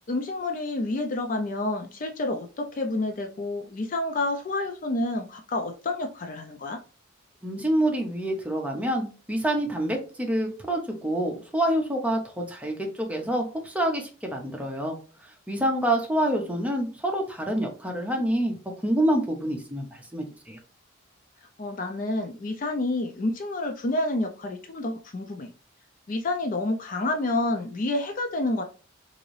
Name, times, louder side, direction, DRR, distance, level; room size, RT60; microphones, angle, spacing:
voice 1, 0.1-6.8 21.6-25.5 26.1-28.6, left 2 dB, 40° left, 0.4 m, -29 dB
voice 2, 7.4-15.0 15.2-18.5 18.8-20.6, right 1 dB, 5° right, 0.7 m, -27 dB
3.7 x 2.6 x 3.1 m
head